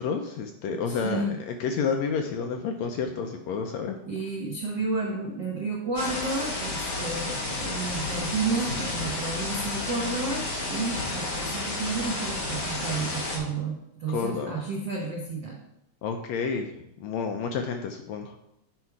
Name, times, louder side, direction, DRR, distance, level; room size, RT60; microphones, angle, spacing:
voice 1, 0.0-4.0 14.1-14.7 16.0-16.7 17.0-18.4, left 5 dB, 80° left, 4 dB, 1.6 m, -30 dB
voice 2, 0.7-1.3 4.1-15.6, right 3 dB, 85° right, -1 dB, 1.0 m, -31 dB
sound 1, 6.0-13.4, left 2 dB, 40° left, 1.8 m, -31 dB
8.4 x 4.8 x 4.6 m, 0.81 s
omnidirectional pair, 3.6 m